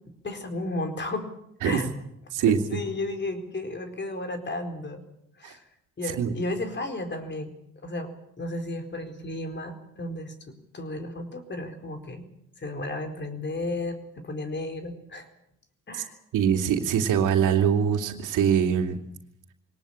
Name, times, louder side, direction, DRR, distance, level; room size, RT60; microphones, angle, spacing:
voice 1, 0.2-1.3 1.6-1.9 2.5-5.0 5.4-5.6 6.0-7.5 7.8-8.1 8.4-12.2 12.6-15.3 15.9-16.2, left 2 dB, 35° left, 7 dB, 4.4 m, -33 dB
voice 2, 2.3-2.8 5.4-5.5 6.2-6.3 16.3-19.0, right 8 dB, 85° right, 4 dB, 2.8 m, -23 dB
22.0 x 18.5 x 8.8 m, 0.75 s
cardioid pair, 90°, 30 cm